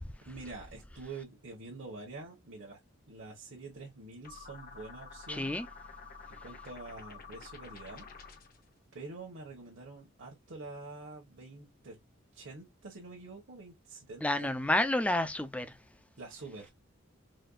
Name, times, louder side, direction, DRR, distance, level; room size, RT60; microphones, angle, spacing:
voice 1, 0.2-2.8 3.1-5.5 6.3-8.1 8.9-12.0 12.3-14.5 16.2-16.7, right 3 dB, 65° right, 1.1 m, -46 dB
sound 1, 4.2-8.6, left 5 dB, 45° left, 0.7 m, -49 dB
voice 2, 5.3-5.7 14.2-15.8, left 1 dB, 5° left, 0.4 m, -30 dB
4.1 x 2.3 x 2.3 m
head